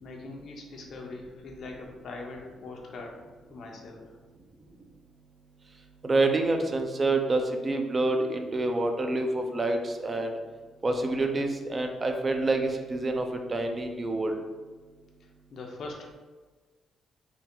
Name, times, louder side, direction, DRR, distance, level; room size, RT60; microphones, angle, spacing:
voice 1, 0.0-3.2 3.5-4.1 15.5-16.1, left 3 dB, 60° left, 1 dB, 0.7 m, -41 dB
voice 2, 6.0-10.3 10.8-14.4, right 2 dB, 30° right, 4 dB, 0.5 m, -27 dB
3.8 x 2.1 x 4.3 m, 1.4 s
cardioid pair, 90°, 0 cm